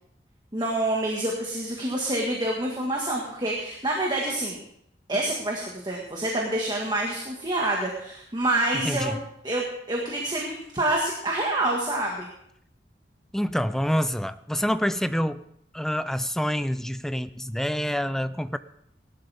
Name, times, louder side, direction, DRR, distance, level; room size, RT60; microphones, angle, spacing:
voice 1, 0.5-4.6 5.1-12.3, right 1 dB, 25° right, -1 dB, 1.7 m, -27 dB
voice 2, 8.8-9.2 13.3-15.4 15.7-18.6, equal, 5° left, 13 dB, 0.4 m, -27 dB
18.0 x 11.5 x 3.5 m, 0.73 s
head